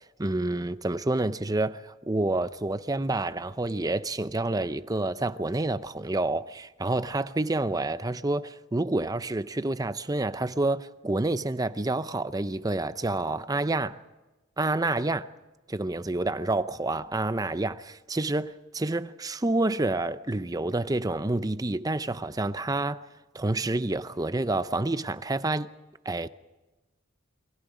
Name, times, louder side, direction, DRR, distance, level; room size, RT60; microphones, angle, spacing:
voice 1, 0.2-14.0 14.6-15.3 15.7-23.0 23.3-25.7 26.0-26.3, right 2 dB, 20° right, 0.6 m, -28 dB
28.5 x 22.5 x 5.0 m
head